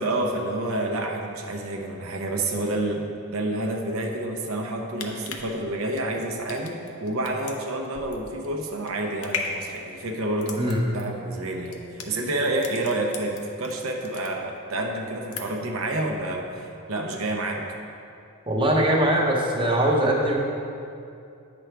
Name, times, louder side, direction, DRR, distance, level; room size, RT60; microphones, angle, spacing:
voice 1, 0.0-10.6 10.9-17.6, right 2 dB, 65° right, 2 dB, 0.7 m, -29 dB
sound 1, 4.7-13.7 14.0-14.8 15.1-15.8 16.1-16.2, left 5 dB, 75° left, 0.7 m, -37 dB
voice 2, 18.5-20.4, right 1 dB, 20° right, -1 dB, 0.9 m, -21 dB
9.0 x 6.1 x 3.4 m, 2.6 s
head